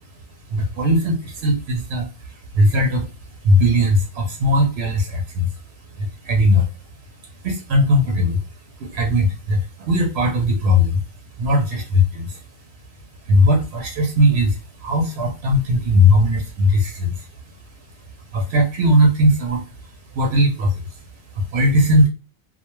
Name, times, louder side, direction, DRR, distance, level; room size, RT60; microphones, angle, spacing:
voice 1, 0.5-3.1 3.4-5.6 5.9-6.7 7.4-11.0 11.4-12.4 13.2-17.3 18.3-21.0 21.3-22.1, left 1 dB, 80° right, 1 dB, 0.8 m, -19 dB
2.2 x 2.1 x 3.0 m, 0.33 s
omnidirectional pair, 1.1 m